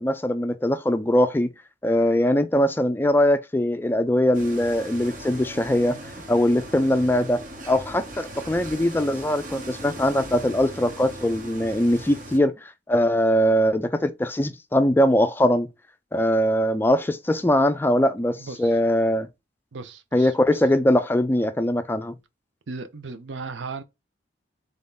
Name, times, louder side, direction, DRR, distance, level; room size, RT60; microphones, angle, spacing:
voice 1, 0.0-1.5 1.8-5.9 6.3-15.7 16.1-19.3 20.1-22.1, left 1 dB, 10° left, 0.3 m, -21 dB
sound 1, 4.3-12.4, right 1 dB, 45° right, 0.9 m, -39 dB
voice 2, 18.4-18.8 19.7-20.3 22.7-23.8, right 4 dB, 85° right, 0.6 m, -36 dB
3.4 x 2.7 x 3.6 m
head